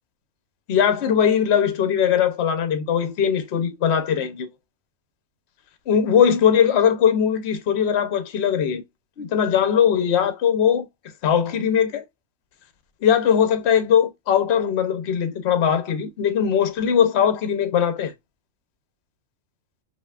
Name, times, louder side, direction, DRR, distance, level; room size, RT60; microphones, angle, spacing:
voice 1, 0.7-4.5 5.9-8.8 9.2-10.9 11.2-12.0 13.0-18.1, left 8 dB, 55° left, 1.0 m, -20 dB
5.5 x 2.7 x 2.4 m
omnidirectional pair, 1.4 m